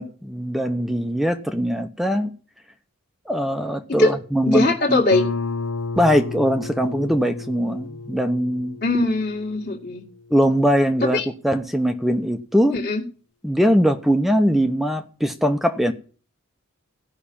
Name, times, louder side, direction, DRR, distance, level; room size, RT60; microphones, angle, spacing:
voice 1, 0.0-2.3 3.3-5.0 6.0-8.8 10.3-12.7 13.4-15.9, equal, ahead, 0.8 m, -21 dB
voice 2, 4.5-5.2 8.8-10.0 11.0-11.3 12.7-13.0, left 3 dB, 40° left, 1.9 m, -20 dB
Guitar, 5.1-10.5, left 4 dB, 80° left, 0.8 m, -32 dB
15.5 x 5.7 x 8.6 m
head